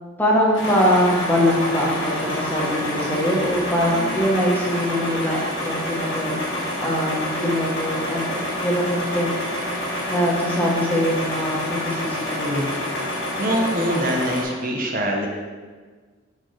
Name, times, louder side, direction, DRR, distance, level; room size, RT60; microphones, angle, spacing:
voice 1, 0.2-5.4 5.6-6.4 6.8-9.3 10.1-12.7, equal, 10° left, -3 dB, 0.9 m, -22 dB
sound 1, 0.5-14.4, left 1 dB, 85° left, 1.7 m, -28 dB
voice 2, 13.4-15.3, equal, 45° right, 0 dB, 0.7 m, -23 dB
6.7 x 4.4 x 3.2 m, 1.4 s
head